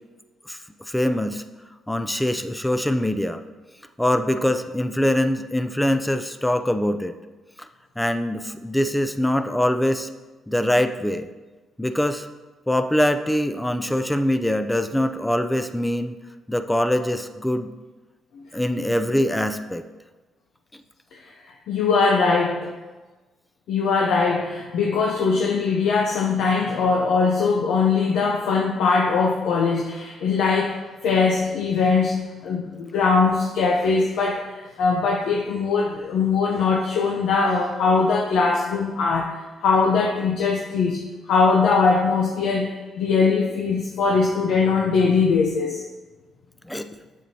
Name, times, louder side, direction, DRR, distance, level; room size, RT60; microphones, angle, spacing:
voice 1, 0.9-1.4 1.9-3.4 4.0-7.2 8.0-10.1 10.5-11.3 11.8-12.3 12.7-16.2 16.5-17.7 18.5-19.8 20.7-20.8 46.6-46.9, left 1 dB, 5° left, 9 dB, 0.4 m, -23 dB
voice 2, 21.7-22.7 23.7-30.8 31.0-34.4 34.8-39.3 39.6-41.0 41.3-45.8, left 4 dB, 80° left, -1 dB, 0.6 m, -21 dB
7.2 x 6.1 x 2.8 m, 1.2 s
cardioid pair, 90°, 0 cm